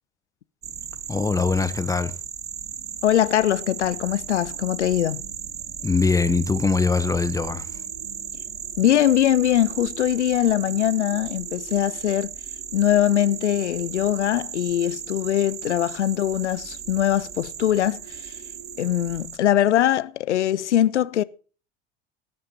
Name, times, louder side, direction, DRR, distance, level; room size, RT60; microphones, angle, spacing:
sound 1, 0.6-19.4, right 9 dB, 30° right, 1.0 m, -36 dB
voice 1, 1.1-2.1 5.8-7.7, left 4 dB, 10° left, 0.7 m, -22 dB
sound 2, 2.5-19.2, right 7 dB, 55° right, 2.6 m, -50 dB
voice 2, 3.0-5.2 8.8-12.3 12.7-18.4 18.8-21.2, left 11 dB, 80° left, 0.5 m, -22 dB
19.0 x 11.0 x 2.8 m
figure-of-eight pair, 75°, 35 cm